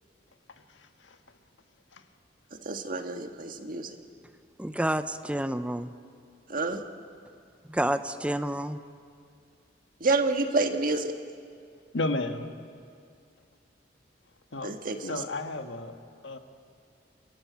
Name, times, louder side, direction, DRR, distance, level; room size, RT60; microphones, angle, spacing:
voice 1, 2.6-3.9 6.5-6.8 10.0-11.1 14.6-15.2, right 3 dB, 50° right, 6 dB, 1.5 m, -28 dB
voice 2, 4.6-5.9 7.7-8.8, right 1 dB, 5° right, 11 dB, 0.6 m, -29 dB
voice 3, 11.9-12.5 14.5-14.7 15.0-15.9 16.2-16.4, left 2 dB, 90° left, 6 dB, 1.5 m, -32 dB
29.5 x 13.5 x 9.4 m, 2.3 s
head